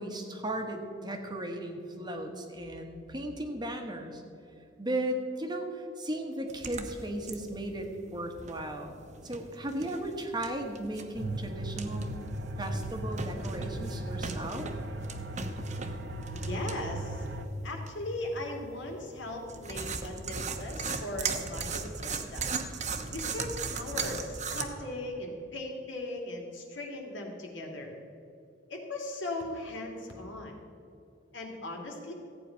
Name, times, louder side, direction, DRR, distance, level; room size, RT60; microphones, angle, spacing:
voice 1, 0.0-4.2 4.8-9.0 9.2-12.1 12.6-14.7, right 1 dB, 25° right, 4 dB, 1.3 m, -36 dB
sound 1, 6.5-24.7, right 5 dB, 40° right, 1.0 m, -39 dB
sound 2, 11.1-17.5, right 1 dB, 65° right, 0.9 m, -37 dB
voice 2, 16.3-22.5 23.1-28.0 28.7-30.6 31.3-32.1, left 2 dB, 80° left, 1 dB, 2.5 m, -38 dB
14.5 x 9.0 x 5.7 m, 2.6 s
head